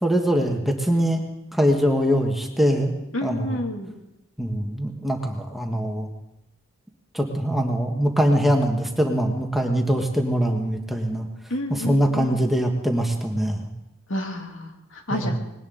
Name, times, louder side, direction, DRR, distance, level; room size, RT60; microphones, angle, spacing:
voice 1, 0.0-1.2 1.5-2.9 3.2-3.6 4.4-6.1 7.1-11.3 11.7-13.7 15.1-15.3, equal, ahead, 2 dB, 1.3 m, -22 dB
voice 2, 3.1-3.9 11.5-12.4 14.1-15.4, left 1 dB, 70° left, 3 dB, 2.3 m, -30 dB
20.0 x 18.0 x 3.8 m, 0.92 s
head